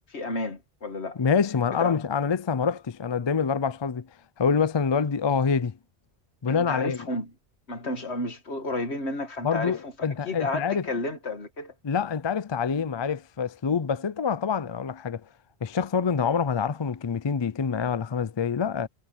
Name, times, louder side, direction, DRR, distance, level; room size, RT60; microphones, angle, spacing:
voice 1, 0.1-1.2 1.8-2.0 6.5-7.3 7.7-9.9 10.3-11.7, left 2 dB, 80° left, 2.2 m, -32 dB
voice 2, 1.2-4.1 4.4-5.8 6.4-7.0 9.4-10.8 11.8-15.2 15.6-18.9, left 6 dB, 35° left, 0.5 m, -26 dB
omnidirectional pair, 1.1 m